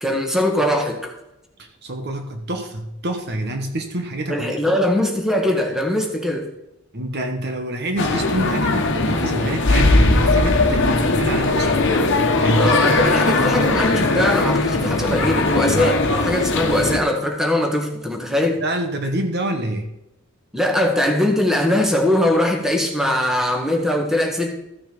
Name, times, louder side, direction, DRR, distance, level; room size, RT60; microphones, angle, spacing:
voice 1, 0.0-1.1 4.3-6.4 12.5-18.6 20.5-24.5, left 1 dB, ahead, 2 dB, 1.5 m, -21 dB
voice 2, 1.6-4.7 6.9-11.7 12.4-12.7 13.1-13.7 18.6-19.9, right 1 dB, 50° right, 5 dB, 1.2 m, -26 dB
sound 1, 8.0-17.0, left 2 dB, 55° left, 1.3 m, -19 dB
14.0 x 6.2 x 5.2 m, 0.87 s
head